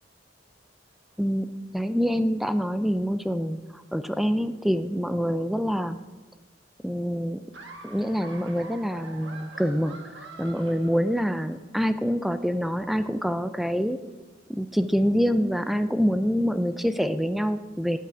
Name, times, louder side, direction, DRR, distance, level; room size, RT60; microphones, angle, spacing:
voice 1, 1.7-6.0 6.8-7.4 7.8-10.0 10.4-14.0 14.5-18.0, equal, ahead, 11 dB, 0.4 m, -26 dB
Laughter, 7.5-11.6, right 3 dB, 70° right, 1.6 m, -45 dB
8.4 x 8.3 x 8.8 m, 1.2 s
head